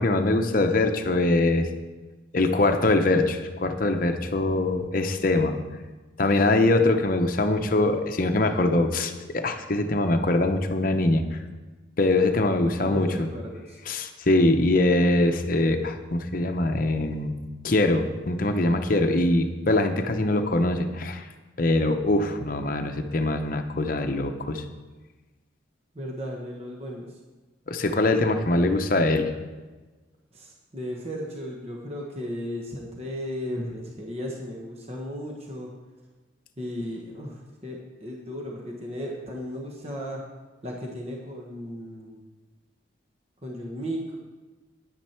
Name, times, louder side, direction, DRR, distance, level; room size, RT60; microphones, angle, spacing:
voice 1, 0.0-1.7 2.3-5.5 6.2-11.2 12.0-13.3 13.9-17.4 17.6-21.2 21.6-24.6 27.7-29.3, left 2 dB, 45° left, 6 dB, 0.8 m, -23 dB
voice 2, 12.8-13.8 25.9-27.2 30.3-35.7 36.6-40.2 40.6-42.2 43.4-44.2, equal, 30° right, -1 dB, 1.2 m, -35 dB
9.9 x 9.7 x 4.4 m, 1.3 s
head